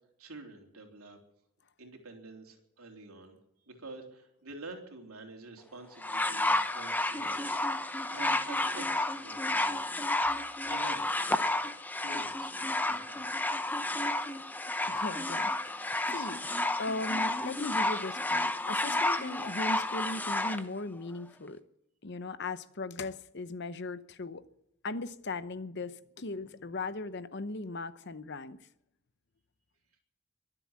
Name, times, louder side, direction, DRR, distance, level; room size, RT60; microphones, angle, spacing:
voice 1, 0.2-1.2 1.8-3.3 3.7-9.8 10.6-11.6 12.0-13.3, right 2 dB, 75° right, 3.5 m, -48 dB
sound 1, 6.0-20.6 21.5-21.6, left 2 dB, 10° left, 0.7 m, -31 dB
voice 2, 14.9-16.4 16.8-21.6 22.0-24.4 24.8-28.6, left 2 dB, 50° left, 0.8 m, -38 dB
23.5 x 7.9 x 7.4 m
head